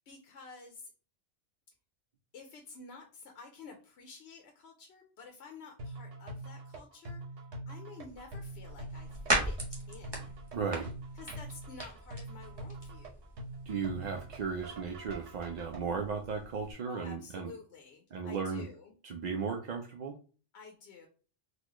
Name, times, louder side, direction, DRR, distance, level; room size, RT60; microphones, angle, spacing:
voice 1, 0.1-0.9 2.3-7.2 7.7-9.1 9.4-10.3 11.1-13.2 16.8-18.9 20.5-21.1, left 4 dB, 80° left, 2 dB, 0.9 m, -51 dB
sound 1, 5.8-15.8, right 1 dB, 80° right, 1.1 m, -44 dB
sound 2, 8.1-16.7, right 1 dB, 25° right, 0.9 m, -39 dB
voice 2, 10.5-10.9 13.7-17.5 18.1-18.7 19.0-20.2, right 5 dB, 55° right, 2 dB, 0.5 m, -35 dB
4.0 x 2.2 x 3.0 m, 0.38 s
omnidirectional pair, 1.1 m